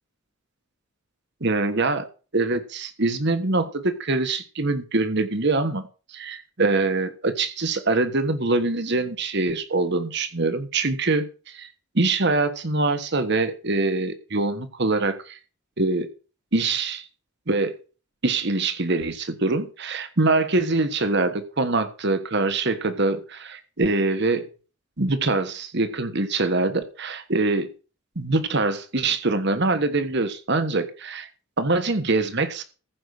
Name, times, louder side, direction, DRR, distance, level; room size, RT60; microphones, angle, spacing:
voice 1, 1.4-2.1 2.3-5.8 6.1-11.7 11.9-15.4 15.8-16.1 16.5-17.0 17.5-17.7 18.2-24.5 25.0-27.7 28.1-31.3 31.6-32.6, right 3 dB, 55° right, 10 dB, 1.4 m, -24 dB
15.0 x 5.5 x 6.5 m, 0.36 s
head